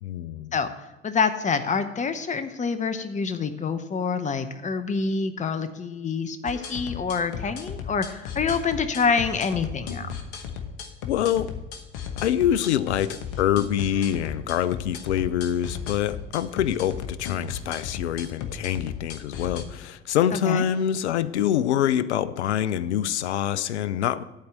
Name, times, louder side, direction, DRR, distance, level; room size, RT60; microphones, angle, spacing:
voice 1, 0.0-0.5 11.1-11.5 12.2-24.2, left 10 dB, 85° left, 16 dB, 0.5 m, -25 dB
voice 2, 1.0-10.1 20.3-20.6, left 5 dB, 20° left, 10 dB, 0.8 m, -26 dB
sound 1, 6.5-19.6, left 7 dB, 65° left, 1.2 m, -35 dB
11.5 x 4.5 x 7.3 m, 1.0 s
hypercardioid pair, 60°, 33 cm